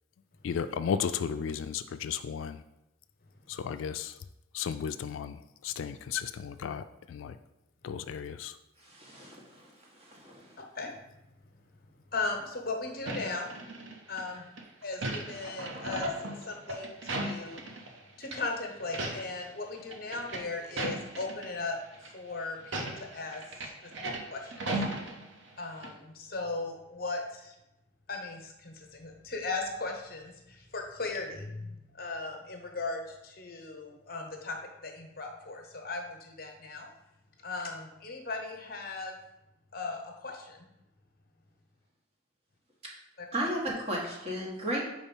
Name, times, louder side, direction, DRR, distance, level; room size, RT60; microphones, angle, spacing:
voice 1, 0.4-2.6 3.5-4.1 4.5-7.4 7.8-8.5, left 7 dB, 80° left, 10 dB, 0.3 m, -34 dB
voice 2, 8.8-10.6 42.8-42.9 43.3-44.8, right 1 dB, 30° right, -2 dB, 1.3 m, -35 dB
voice 3, 12.1-13.5 14.1-14.4 14.8-16.1 16.5-17.6 18.2-23.4 24.3-24.6 25.6-27.5 28.1-34.6 34.8-36.9 37.4-39.1 39.7-40.7 43.2-43.3, left 3 dB, 50° left, 2 dB, 0.9 m, -37 dB
sound 1, 13.1-14.2 14.6-18.0 18.2-18.4 18.8-19.5 19.7-21.5 21.9-22.1 22.6-25.6 25.8-25.9, right 1 dB, 70° right, 0.8 m, -36 dB
4.8 x 4.1 x 5.4 m, 0.90 s
head